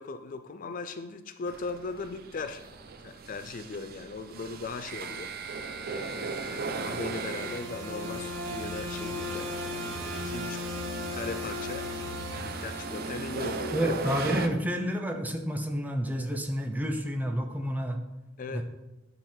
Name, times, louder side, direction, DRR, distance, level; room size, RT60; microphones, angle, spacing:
voice 1, 0.0-2.6 3.0-5.3 5.9-9.5 10.1-10.6 11.1-11.9 12.3-13.9 18.4-18.6, left 4 dB, 45° left, 9 dB, 0.4 m, -38 dB
sound 1, 1.5-14.5, right 4 dB, 50° right, 0.5 m, -38 dB
sound 2, 6.2-14.3, left 2 dB, 75° right, 1.0 m, -38 dB
voice 2, 13.7-18.0 18.5-18.6, equal, 10° right, 4 dB, 0.7 m, -29 dB
8.9 x 3.9 x 4.4 m, 1.0 s
head